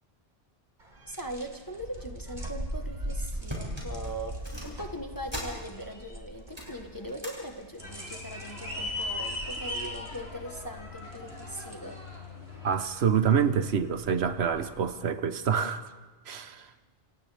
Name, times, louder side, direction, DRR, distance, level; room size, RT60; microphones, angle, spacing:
sound 1, 0.8-14.9, right 1 dB, 50° right, 3.7 m, -42 dB
voice 1, 1.0-12.0 16.5-16.6, equal, 20° left, 4 dB, 1.2 m, -40 dB
sound 2, 2.9-3.0 3.3-6.0 6.3-7.4 7.7-8.1 8.9-9.3 9.8-9.9, equal, 25° right, 7.3 m, -41 dB
sound 3, 7.8-12.8, left 2 dB, 80° left, 4.9 m, -38 dB
voice 2, 12.6-15.9 16.3-16.7, right 7 dB, 80° right, 10 dB, 1.2 m, -27 dB
29.0 x 28.0 x 3.4 m, 1.3 s
omnidirectional pair, 1.1 m